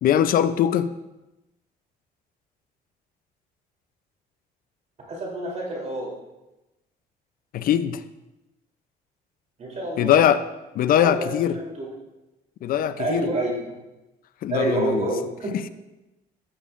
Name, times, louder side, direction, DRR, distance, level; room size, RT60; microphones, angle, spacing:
voice 1, 0.0-0.9 7.5-8.0 10.0-10.4 10.7-11.6 12.6-13.3 14.4-15.1 15.5-15.7, left 10 dB, 60° left, 13 dB, 0.5 m, -21 dB
voice 2, 5.1-6.1 9.6-10.3 10.9-11.9 13.0-13.6 14.5-15.5, right 2 dB, 40° right, -3 dB, 3.2 m, -28 dB
13.5 x 7.1 x 2.5 m, 0.98 s
cardioid pair, 110°, 17 cm